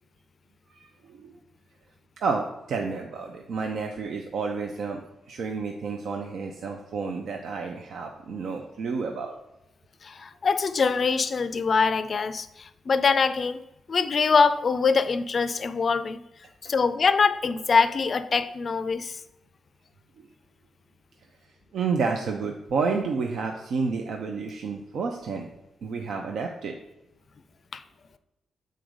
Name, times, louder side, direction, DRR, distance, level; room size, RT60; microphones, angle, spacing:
voice 1, 0.7-1.3 2.2-5.0 5.3-9.3 20.2-20.3 21.7-25.5 25.8-26.8, right 4 dB, 70° right, 2 dB, 0.6 m, -30 dB
voice 2, 10.0-13.6 13.9-16.2 16.7-19.2 27.7-27.8, left 5 dB, 40° left, 13 dB, 0.4 m, -23 dB
7.8 x 3.9 x 5.1 m, 0.91 s
wide cardioid pair, 145°, 0 cm